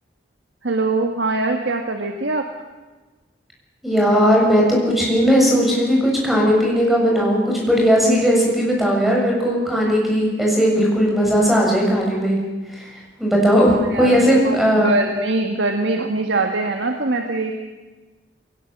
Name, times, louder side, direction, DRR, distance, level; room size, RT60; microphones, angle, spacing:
voice 1, 0.6-2.5 13.7-14.6 14.8-17.5, right 2 dB, 85° right, 3 dB, 1.7 m, -22 dB
voice 2, 3.8-12.4 12.7-12.9 13.2-14.9, equal, ahead, -2 dB, 7.1 m, -17 dB
23.0 x 19.0 x 7.4 m, 1.2 s
head